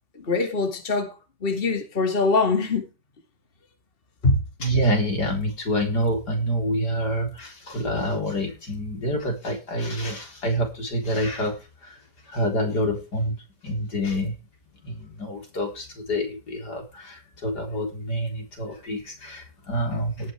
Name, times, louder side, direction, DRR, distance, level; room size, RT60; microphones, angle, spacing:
voice 1, 0.3-1.1 1.4-2.8 4.2-4.4, left 3 dB, 35° left, 2.3 m, -22 dB
voice 2, 4.6-12.0 12.3-13.4 13.6-14.3 14.8-20.3, equal, 75° left, 4.6 m, -27 dB
18.0 x 9.7 x 3.3 m
omnidirectional pair, 1.8 m